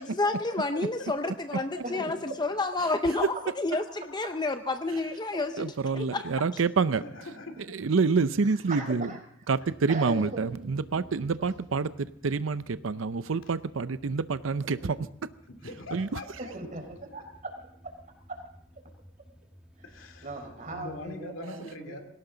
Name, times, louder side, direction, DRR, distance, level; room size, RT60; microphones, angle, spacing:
voice 1, 0.0-6.3 6.5-6.6, left 2 dB, 20° left, 8 dB, 0.6 m, -30 dB
voice 2, 5.6-7.0 7.6-9.1 9.5-15.0 15.9-16.2, right 4 dB, 85° right, 14 dB, 0.6 m, -27 dB
voice 3, 7.0-7.7 15.5-16.5 19.8-20.3 20.7-22.0, left 2 dB, 80° left, 6 dB, 2.4 m, -42 dB
voice 4, 8.4-9.2 9.9-10.4 14.6-14.9 16.4-17.5 18.3-18.4 19.8-19.9 20.2-22.0, right 2 dB, 40° right, 4 dB, 4.2 m, -39 dB
sound 1, 9.6-21.2, equal, 5° right, 1.8 m, -55 dB
21.0 x 17.5 x 3.9 m, 0.69 s
head